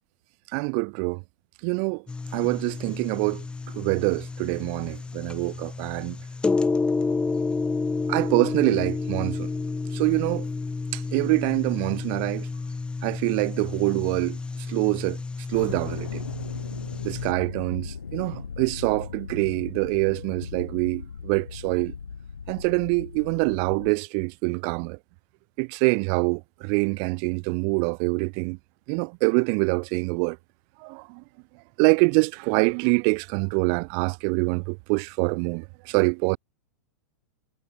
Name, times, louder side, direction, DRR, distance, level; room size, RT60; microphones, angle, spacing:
voice 1, 0.5-1.2 1.6-2.0 2.3-3.4 3.7-6.2 8.1-9.5 9.9-10.5 10.9-12.5 13.0-14.4 14.7-15.2 15.5-16.2 17.0-21.9 22.5-25.0 25.6-28.6 28.9-30.4 30.8-31.2 31.8-36.4, right 40 dB or more, 50° right, 1.5 m, -25 dB
sound 1, 2.1-17.3, left 4 dB, 10° left, 1.1 m, -30 dB
sound 2, 15.5-23.9, left 6 dB, 85° left, 6.1 m, -38 dB
hypercardioid pair, 100°, 9 cm